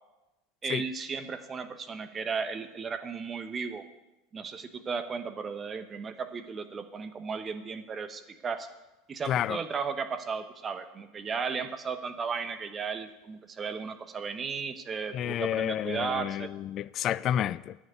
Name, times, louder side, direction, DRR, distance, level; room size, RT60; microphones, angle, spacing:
voice 1, 0.6-3.8 4.3-8.7 9.1-16.5, right 5 dB, 30° right, 1.1 m, -35 dB
voice 2, 9.3-9.6 15.1-17.8, left 11 dB, 45° left, 0.4 m, -30 dB
9.3 x 6.6 x 8.2 m
hypercardioid pair, 80°, 0 cm